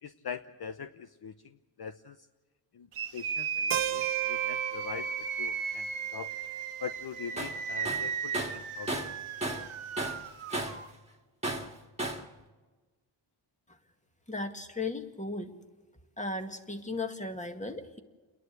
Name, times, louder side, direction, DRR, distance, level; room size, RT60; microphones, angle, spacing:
voice 1, 0.0-2.3 2.7-2.9 3.1-5.1 5.4-6.3 6.8-9.2, left 7 dB, 50° left, 10 dB, 0.8 m, -43 dB
sound 1, 2.9-10.9, right 7 dB, 85° right, 1.4 m, -35 dB
Keyboard (musical), 3.7-7.6, right 12 dB, 70° right, 0.7 m, -37 dB
Tools, 7.4-7.6 7.9-9.7 10.0-10.9 11.4-12.3, right 1 dB, 15° right, 2.1 m, -34 dB
voice 2, 14.3-15.5 16.2-18.0, left 2 dB, 15° left, 6 dB, 2.0 m, -36 dB
30.0 x 11.0 x 8.1 m, 1.3 s
cardioid pair, 85°, 49 cm